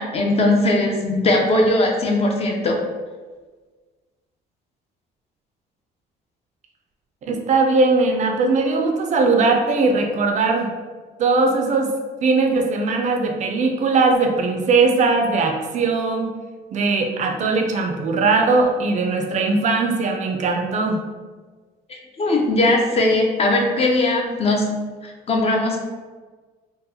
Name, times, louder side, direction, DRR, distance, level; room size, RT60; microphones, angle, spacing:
voice 1, 0.0-2.8 21.9-24.8 25.0-25.8, left 2 dB, 35° left, 1 dB, 0.6 m, -19 dB
voice 2, 7.2-10.7 11.2-11.9 12.2-16.3 16.7-21.0, right 3 dB, 45° right, 3 dB, 0.4 m, -19 dB
3.8 x 2.1 x 2.8 m, 1.4 s
cardioid pair, 110°, 17 cm